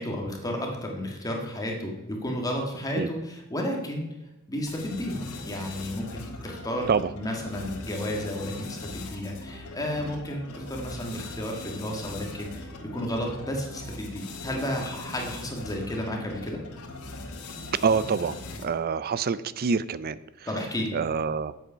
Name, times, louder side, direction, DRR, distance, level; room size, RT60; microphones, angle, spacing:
voice 1, 0.0-4.1 4.5-16.6 20.5-20.9, equal, 15° left, 1 dB, 1.6 m, -32 dB
sound 1, 4.7-18.9, left 2 dB, 75° left, 2.0 m, -40 dB
voice 2, 17.8-20.5 20.9-21.5, right 5 dB, 45° right, 16 dB, 0.4 m, -26 dB
8.6 x 7.8 x 5.6 m, 1.0 s
head